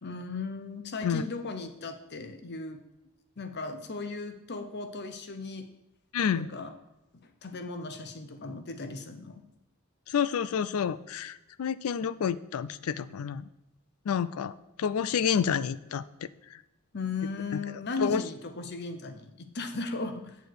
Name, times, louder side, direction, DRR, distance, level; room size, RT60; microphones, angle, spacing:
voice 1, 0.0-2.8 3.4-5.7 6.3-6.7 7.2-9.4 16.9-20.4, left 3 dB, 50° left, 8 dB, 0.8 m, -37 dB
voice 2, 6.1-6.5 10.1-13.5 14.1-16.6 18.0-18.2, left 7 dB, 85° left, 16 dB, 0.4 m, -29 dB
8.2 x 6.8 x 4.7 m, 0.97 s
head